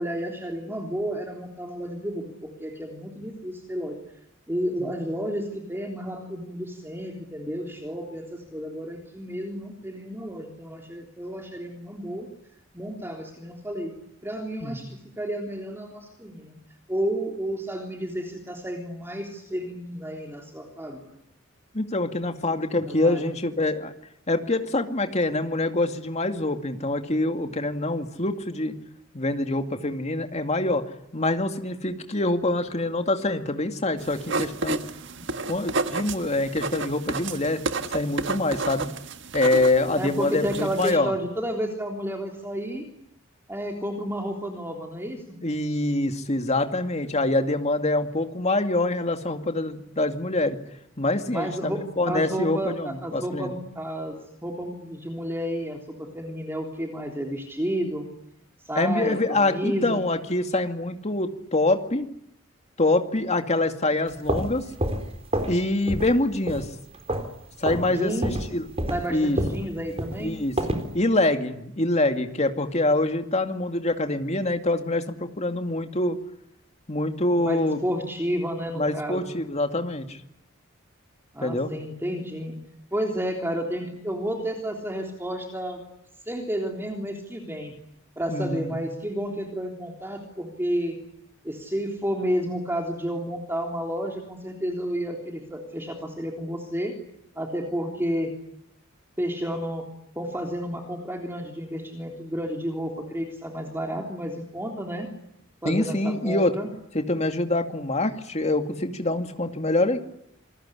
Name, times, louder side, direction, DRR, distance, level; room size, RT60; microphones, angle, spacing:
voice 1, 0.0-4.0 4.5-12.3 12.7-14.0 14.2-16.5 16.9-21.0 22.9-23.3 40.0-42.8 43.5-45.4 51.3-58.1 58.6-60.0 67.8-68.4 68.9-70.3 77.4-79.3 81.3-82.6 82.9-85.8 86.3-87.7 88.2-91.0 91.4-96.9 97.3-98.3 99.2-99.8 100.1-105.1 105.6-106.7, equal, 10° right, 2 dB, 3.4 m, -31 dB
voice 2, 21.7-23.9 24.3-28.7 29.1-30.8 31.1-34.8 35.4-37.6 37.9-38.9 39.3-41.1 45.4-50.6 51.0-53.5 58.7-62.1 62.8-64.7 65.5-66.7 67.6-68.7 69.1-69.4 70.2-70.6 70.9-76.2 76.9-77.8 78.7-80.2 81.4-81.7 88.3-88.7 105.6-106.5 106.9-110.0, left 2 dB, 35° left, 6 dB, 2.3 m, -25 dB
sound 1, 34.0-41.0, right 3 dB, 60° right, 1.6 m, -31 dB
sound 2, 64.1-65.6 65.9-66.2 66.5-67.4 67.6-67.9 68.2-70.9, right 1 dB, 30° right, 3.8 m, -28 dB
27.5 x 21.5 x 10.0 m, 0.76 s
head